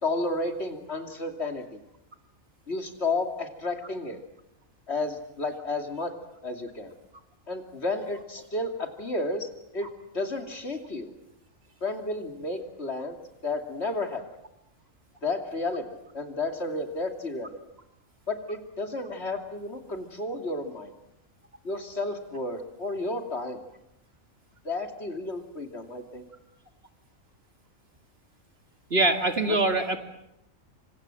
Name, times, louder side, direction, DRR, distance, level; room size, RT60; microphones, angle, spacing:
voice 1, 0.0-1.6 2.7-4.2 4.9-6.1 6.4-6.9 7.5-9.9 10.1-11.1 11.8-13.2 13.4-14.2 15.2-15.8 16.1-17.6 18.3-20.9 21.6-23.6 24.6-26.2 29.5-29.6, left 2 dB, 50° left, 5 dB, 3.0 m, -32 dB
voice 2, 28.9-30.0, right 2 dB, 45° right, 6 dB, 2.5 m, -23 dB
28.0 x 25.5 x 7.7 m, 0.81 s
omnidirectional pair, 1.4 m